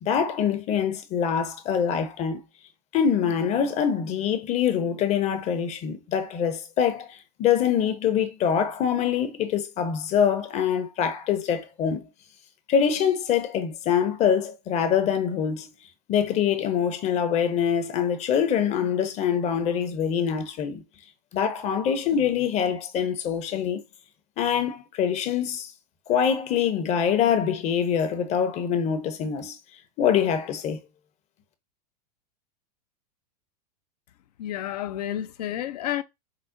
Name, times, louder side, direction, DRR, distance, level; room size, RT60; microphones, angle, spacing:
voice 1, 0.0-2.4 2.9-12.1 12.7-15.7 16.1-20.8 21.3-23.8 24.4-25.7 26.1-29.6 30.0-30.8, left 8 dB, 35° left, 0.7 m, -24 dB
voice 2, 34.4-36.0, left 12 dB, 75° left, 0.5 m, -30 dB
4.7 x 2.0 x 2.6 m
hypercardioid pair, 110°, 21 cm